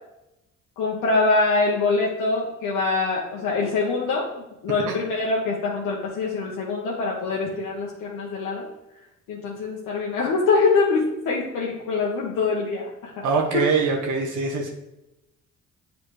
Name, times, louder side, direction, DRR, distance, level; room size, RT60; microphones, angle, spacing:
voice 1, 0.8-8.7 9.3-13.2 13.5-13.6, left 3 dB, 85° left, -4 dB, 1.1 m, -24 dB
voice 2, 13.2-14.7, right 4 dB, 75° right, 1 dB, 1.0 m, -23 dB
7.9 x 4.1 x 3.2 m, 0.92 s
cardioid pair, 90°, 30 cm